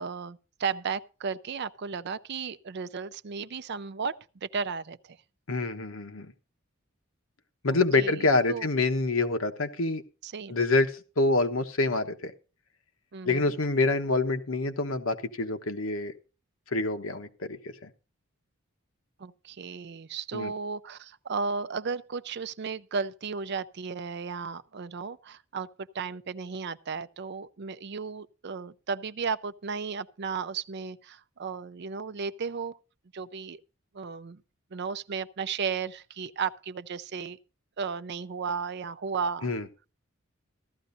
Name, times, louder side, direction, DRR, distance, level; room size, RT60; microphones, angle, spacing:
voice 1, 0.0-5.2 8.0-8.7 10.2-10.6 13.1-13.5 19.2-25.7 25.9-32.8 33.1-33.6 33.9-34.4 34.7-37.4 37.8-39.5, right 5 dB, 55° right, 0.5 m, -34 dB
voice 2, 5.5-6.3 7.6-10.0 10.5-12.3 13.2-16.1 16.7-17.9 20.3-20.5 39.4-39.7, left 3 dB, 85° left, 1.2 m, -26 dB
15.0 x 13.0 x 2.6 m
head